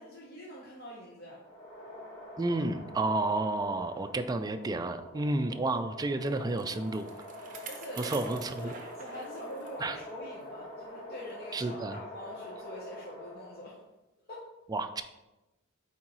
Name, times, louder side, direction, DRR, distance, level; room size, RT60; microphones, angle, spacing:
voice 1, 0.0-1.4 7.7-8.3 8.6-13.8 14.3-14.5, equal, 50° left, -4 dB, 0.9 m, -44 dB
sound 1, 1.4-13.8, left 1 dB, 25° left, 2.2 m, -46 dB
voice 2, 2.4-7.1 8.0-8.7 9.8-10.0 11.5-12.0 14.7-15.0, right 2 dB, 20° right, 9 dB, 0.3 m, -31 dB
Bicycle, 6.0-10.0 10.4-10.5 11.3-11.4, right 5 dB, 40° right, 0.7 m, -48 dB
8.6 x 3.6 x 3.0 m, 1.0 s
head